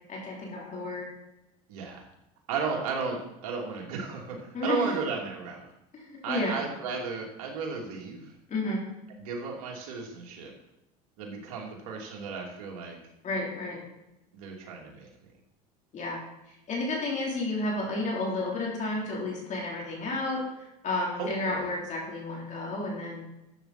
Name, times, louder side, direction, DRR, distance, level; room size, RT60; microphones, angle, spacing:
voice 1, 0.1-1.1 4.5-4.9 5.9-6.6 8.5-8.8 13.2-13.8 15.9-16.2 16.5-23.2, left 2 dB, 40° left, -3 dB, 4.0 m, -31 dB
voice 2, 1.7-2.1 2.5-5.7 6.2-8.3 9.2-10.5 11.2-13.0 14.3-15.3 21.2-21.7, right 5 dB, 80° right, 0 dB, 2.8 m, -34 dB
12.0 x 8.0 x 4.4 m, 0.89 s
supercardioid pair, 95°, 20 cm